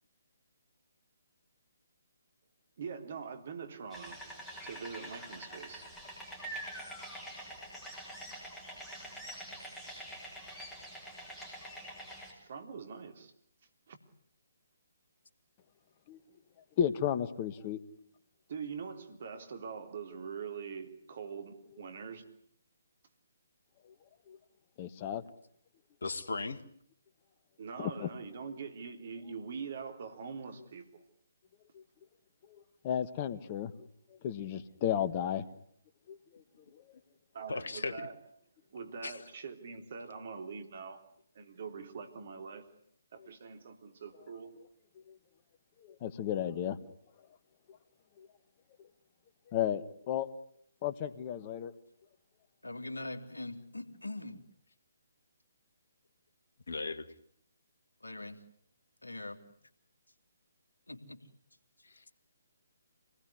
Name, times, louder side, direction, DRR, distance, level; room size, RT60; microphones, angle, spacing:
voice 1, 2.8-4.2 4.6-5.8 12.4-13.3 13.9-14.0 18.5-22.2 27.6-31.0 37.3-38.1 38.7-41.0 41.4-42.7 43.1-44.5, right 6 dB, 50° right, 7 dB, 3.5 m, -43 dB
sound 1, 3.9-12.3, right 1 dB, ahead, 7.3 m, -45 dB
voice 2, 16.8-17.8 24.3-24.4 24.8-25.2 27.8-28.1 32.8-33.7 34.2-35.4 36.1-36.4 36.7-36.8 45.1-45.2 46.0-46.8 48.2-48.3 49.5-50.3 50.8-51.7, left 9 dB, 30° left, 13 dB, 1.5 m, -33 dB
voice 3, 26.0-26.6 37.5-38.1 39.0-39.2 56.7-57.1 61.8-62.0, left 3 dB, 65° left, 10 dB, 1.9 m, -37 dB
voice 4, 52.6-54.4 58.0-58.4 59.0-59.4 60.9-61.3, left 2 dB, 80° left, 6 dB, 2.7 m, -42 dB
26.5 x 19.5 x 9.7 m, 0.67 s
figure-of-eight pair, 140°, 0 cm